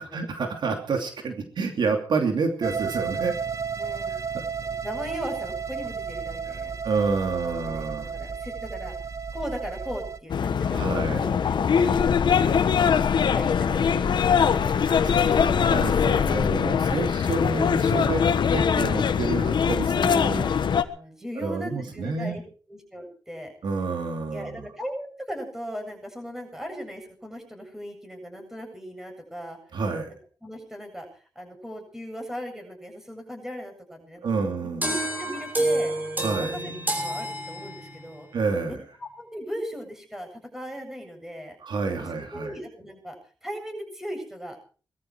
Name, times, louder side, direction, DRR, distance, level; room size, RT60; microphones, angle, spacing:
voice 1, 0.0-3.4 6.8-8.1 10.6-11.3 15.3-20.5 21.4-22.4 23.6-24.7 29.7-30.1 34.2-35.0 36.2-36.6 38.3-38.8 41.6-42.5, right 4 dB, 70° right, 4 dB, 2.9 m, -29 dB
sound 1, 2.6-10.2, right 6 dB, 40° right, 1.2 m, -33 dB
voice 2, 3.8-4.1 4.6-6.7 7.2-8.9 9.3-12.0 12.4-15.6 20.2-22.4 22.7-23.5 24.3-29.6 30.4-35.9 36.3-38.3 38.6-41.6 42.3-43.2 43.4-44.8, equal, 5° right, 4 dB, 7.6 m, -38 dB
sound 2, 10.3-20.8, left 7 dB, 75° left, 1.3 m, -22 dB
sound 3, 34.8-38.1, right 1 dB, 20° right, 6.1 m, -28 dB
21.0 x 13.5 x 4.8 m, 0.41 s
cardioid pair, 80°, 8 cm